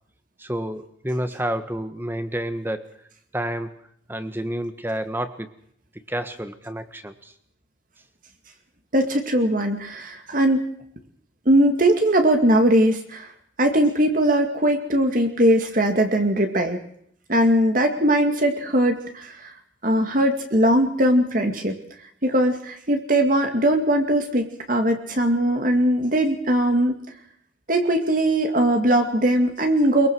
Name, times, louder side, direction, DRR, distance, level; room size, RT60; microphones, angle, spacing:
voice 1, 0.4-2.9 3.3-3.7 4.1-5.5 6.1-7.3, right 1 dB, 10° right, 10 dB, 1.6 m, -29 dB
voice 2, 8.9-10.6 11.5-13.3 13.6-16.8 17.3-19.5 19.8-21.8 22.2-27.0 27.7-30.1, right 1 dB, 45° right, 5 dB, 2.3 m, -20 dB
23.0 x 23.0 x 6.3 m, 0.67 s
head